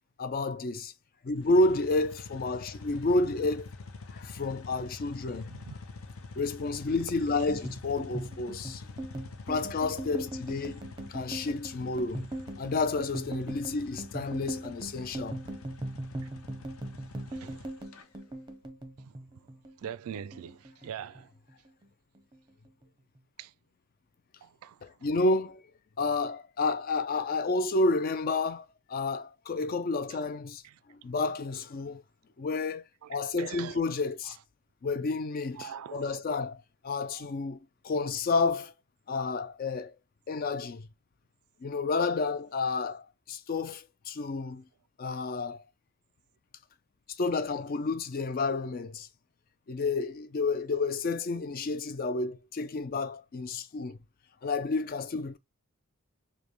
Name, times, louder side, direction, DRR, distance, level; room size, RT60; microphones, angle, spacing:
voice 1, 0.2-0.9 1.2-3.7 4.1-5.5 6.4-8.9 9.5-10.8 11.1-12.2 12.6-15.4 24.8-25.6 26.0-30.6 30.9-32.0 32.4-32.8 33.1-34.4 34.8-37.6 37.8-38.7 39.1-39.9 40.3-40.9 41.6-44.6 45.0-45.6 47.2-49.1 49.7-54.0 54.4-55.4, left 3 dB, 40° left, 0.3 m, -30 dB
sound 1, 1.4-18.0, left 3 dB, 70° left, 0.6 m, -46 dB
sound 2, 7.5-19.9 20.1-21.2 21.5-21.8 22.1-22.8, right 1 dB, 20° right, 0.6 m, -40 dB
voice 2, 17.3-17.7 19.0-19.2 19.8-21.3 23.4-23.5 24.4-24.8 30.6-30.8 33.0-33.8 35.6-36.2 37.2-37.3, right 8 dB, 75° right, 0.3 m, -43 dB
5.1 x 2.2 x 3.0 m
head